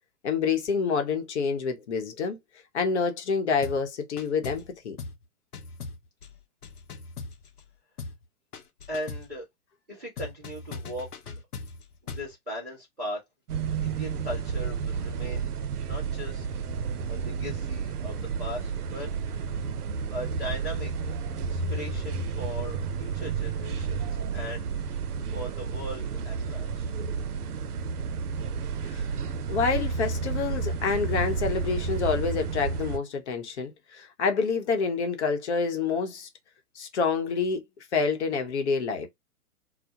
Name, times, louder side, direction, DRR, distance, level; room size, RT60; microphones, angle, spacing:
voice 1, 0.2-2.4 2.7-5.0 28.9-29.0 29.5-36.3 36.8-37.6 37.9-39.1, left 5 dB, 50° left, 0.8 m, -27 dB
sound 1, 3.6-3.9 4.2-4.7 5.0-5.2 5.5-7.7 8.0-8.2 8.5-9.3 10.2-12.3, left 4 dB, 80° left, 0.7 m, -40 dB
voice 2, 8.9-9.4 9.9-11.1 12.1-13.2 13.8-15.5 15.8-16.5 17.1-19.7 20.1-24.9 25.2-26.9, equal, ahead, 0.3 m, -39 dB
sound 2, 13.5-33.0, right 5 dB, 85° right, 0.5 m, -31 dB
2.2 x 2.1 x 2.8 m
figure-of-eight pair, 120°, 45 cm